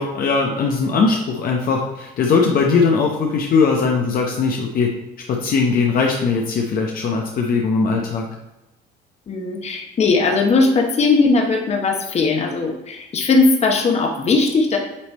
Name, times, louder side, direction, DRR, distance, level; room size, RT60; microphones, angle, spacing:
voice 1, 0.0-4.9 5.3-8.3, left 4 dB, 60° left, 0 dB, 0.9 m, -19 dB
voice 2, 9.3-14.8, left 3 dB, 40° left, 2 dB, 1.2 m, -18 dB
8.7 x 3.3 x 4.2 m, 0.98 s
cardioid pair, 110°, 17 cm